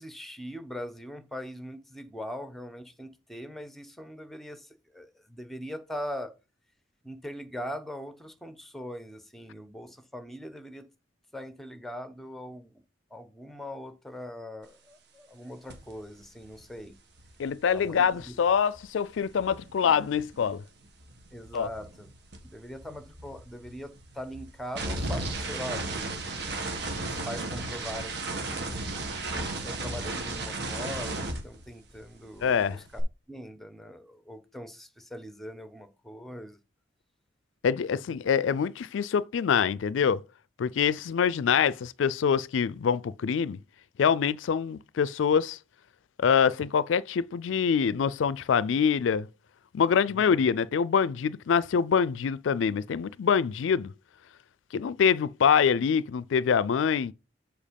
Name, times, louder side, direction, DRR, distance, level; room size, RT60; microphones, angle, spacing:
voice 1, 0.0-6.3 7.0-10.9 11.3-12.8 13.1-16.9 17.7-18.4 21.3-22.1 22.4-26.1 27.0-28.7 29.6-33.0 33.3-36.6 50.1-50.4, equal, ahead, 0.9 m, -41 dB
sound 1, 15.7-15.9 16.2-20.6 20.8-32.1 32.4-33.0, right 2 dB, 60° right, 2.0 m, -35 dB
voice 2, 17.4-20.6 21.5-21.7 32.4-32.8 37.6-40.2 40.6-43.6 44.0-45.6 46.2-49.3 49.7-53.9 54.7-57.1, left 7 dB, 90° left, 0.4 m, -25 dB
7.4 x 4.5 x 5.2 m
head